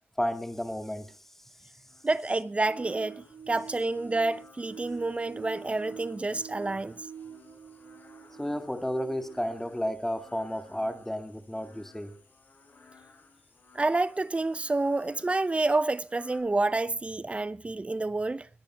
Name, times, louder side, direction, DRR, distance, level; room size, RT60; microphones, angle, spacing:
voice 1, 0.2-1.2 8.4-12.1, equal, 5° left, 2.1 m, -32 dB
sound 1, 1.9-16.4, left 4 dB, 50° left, 5.1 m, -57 dB
voice 2, 2.0-6.9 13.7-18.5, right 2 dB, 25° right, 0.7 m, -28 dB
sound 2, 2.7-9.7, right 7 dB, 65° right, 1.1 m, -46 dB
21.0 x 9.2 x 4.6 m
cardioid pair, 70°, 4 cm